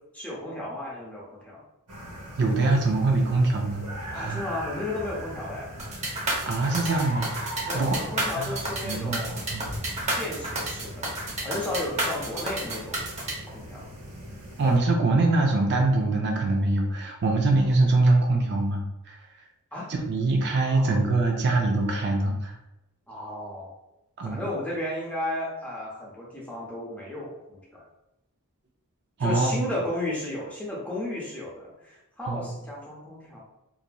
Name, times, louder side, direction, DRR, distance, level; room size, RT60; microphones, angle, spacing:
voice 1, 0.1-1.6 4.1-5.7 7.7-9.4 10.2-11.1 11.4-13.0 13.5-13.9 19.7-19.9 20.6-21.0 23.1-23.7 24.3-27.9 29.2-33.4, left 1 dB, 5° left, -5 dB, 0.7 m, -34 dB
sound 1, 1.9-14.8, equal, 85° right, 0.9 m, -39 dB
voice 2, 2.4-3.9 4.1-4.4 6.4-7.9 8.4-8.5 8.8-9.2 9.5-9.6 14.6-19.2 19.9-22.6 24.2-24.4 29.2-29.5 32.3-32.5, right 2 dB, 50° right, 1 dB, 0.4 m, -23 dB
sound 2, 5.8-13.3, right 2 dB, 30° right, 0.8 m, -30 dB
2.9 x 2.6 x 2.2 m, 0.93 s
head